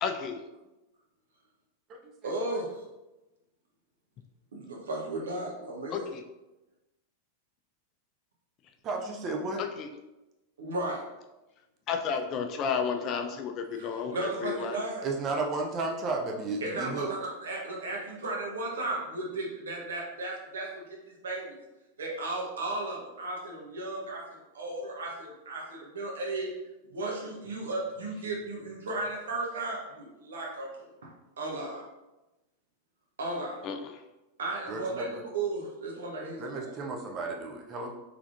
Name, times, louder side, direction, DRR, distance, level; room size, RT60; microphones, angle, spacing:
voice 1, 0.0-0.4 5.9-6.2 9.6-9.9 11.9-14.8 33.6-33.8, left 6 dB, 35° left, 5 dB, 0.3 m, -32 dB
voice 2, 2.2-2.8 4.5-6.1 10.6-11.1 13.7-15.1 16.6-21.6 22.0-26.5 26.9-31.8 33.2-33.7 34.4-36.7, right 2 dB, 65° right, -2 dB, 0.8 m, -35 dB
voice 3, 8.8-9.6 15.0-17.1 34.7-35.2 36.4-37.9, right 3 dB, 30° right, 2 dB, 0.5 m, -33 dB
3.5 x 3.2 x 2.5 m, 1.0 s
figure-of-eight pair, 90°, 0 cm